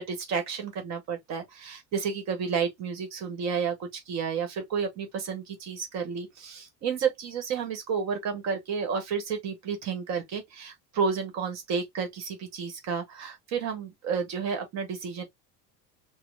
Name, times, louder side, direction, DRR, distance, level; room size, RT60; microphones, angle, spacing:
voice 1, 0.0-15.2, right 6 dB, 50° right, 1.1 m, -31 dB
4.2 x 2.0 x 3.2 m
cardioid pair, 155°, 34 cm